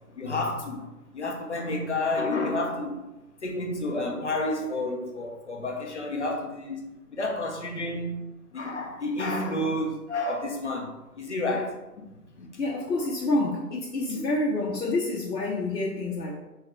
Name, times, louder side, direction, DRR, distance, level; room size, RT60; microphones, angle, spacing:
voice 1, 0.2-3.0 3.4-6.8 7.1-8.3 8.5-11.8 12.4-12.5 14.1-14.2, left 2 dB, 45° left, 1 dB, 0.7 m, -30 dB
voice 2, 12.6-16.4, left 2 dB, 80° left, -3 dB, 1.0 m, -28 dB
4.7 x 3.5 x 3.0 m, 0.99 s
figure-of-eight pair, 165°, 49 cm